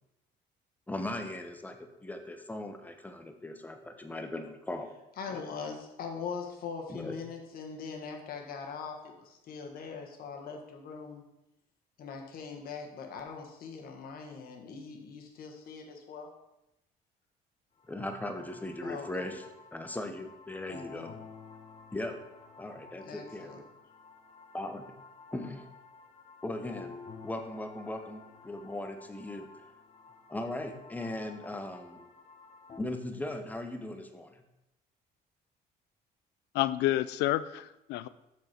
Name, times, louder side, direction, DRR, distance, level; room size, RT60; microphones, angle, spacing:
voice 1, 0.9-1.8 2.0-4.9 6.9-7.1 17.9-19.4 19.7-21.2 21.9-22.2 22.6-23.6 24.5-24.8 25.3-25.7 26.4-27.0 27.2-29.5 30.3-32.0 32.8-34.4, left 1 dB, 10° left, 6 dB, 0.9 m, -38 dB
voice 2, 5.2-11.2 12.0-16.3 18.8-19.3 20.7-21.1 23.0-23.6, left 5 dB, 60° left, 3 dB, 1.5 m, -41 dB
sound 1, 17.8-32.8, left 5 dB, 35° left, 1.0 m, -52 dB
voice 3, 36.5-38.1, left 15 dB, 80° left, 16 dB, 0.4 m, -29 dB
6.5 x 6.4 x 4.4 m, 0.90 s
cardioid pair, 110°, 17 cm